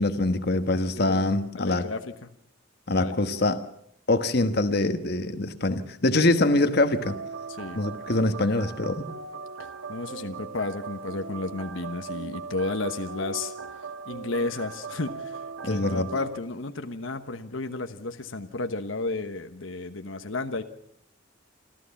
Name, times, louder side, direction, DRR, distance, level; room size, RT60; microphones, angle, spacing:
voice 1, 0.0-1.8 2.9-3.6 4.1-7.2 7.7-9.1 15.6-16.1, left 2 dB, 55° left, 9 dB, 1.3 m, -24 dB
voice 2, 1.0-1.3 1.6-2.3 2.9-3.2 7.6-7.8 9.9-13.5 14.1-20.6, left 3 dB, 80° left, 7 dB, 1.2 m, -32 dB
sound 1, 7.0-16.4, right 5 dB, 85° right, 1.6 m, -39 dB
27.5 x 14.0 x 7.2 m, 0.71 s
head